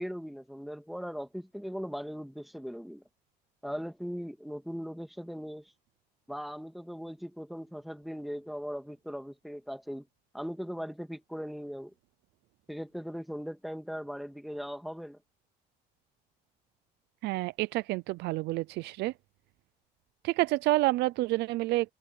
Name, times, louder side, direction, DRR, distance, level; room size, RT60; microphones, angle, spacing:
voice 1, 0.0-3.0 3.6-5.7 6.3-10.1 10.3-11.9 12.7-15.2, equal, ahead, 2.5 m, -39 dB
voice 2, 17.2-19.1 20.2-21.9, right 19 dB, 80° right, 0.5 m, -28 dB
cardioid pair, 110°, 17 cm